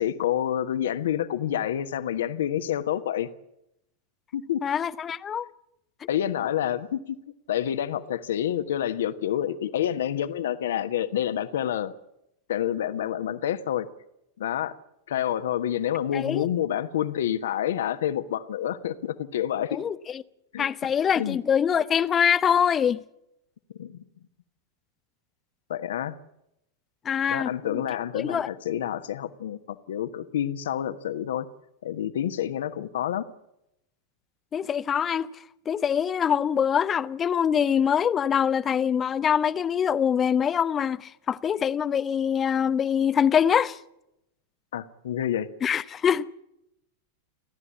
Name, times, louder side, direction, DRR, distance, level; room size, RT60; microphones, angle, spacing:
voice 1, 0.0-3.3 4.3-4.6 6.1-7.2 7.5-11.9 12.5-13.9 14.4-14.8 15.1-19.8 20.5-20.7 21.2-21.4 23.7-24.0 25.7-26.1 27.3-31.5 31.8-33.3 44.7-45.5, left 10 dB, 60° left, 1.3 m, -28 dB
voice 2, 4.6-5.5 16.1-16.4 19.7-20.2 20.6-23.0 27.0-27.8 28.1-28.5 34.5-35.3 35.7-43.8 45.6-46.3, left 8 dB, 25° left, 0.8 m, -24 dB
29.5 x 12.5 x 8.6 m
figure-of-eight pair, 90°, 0 cm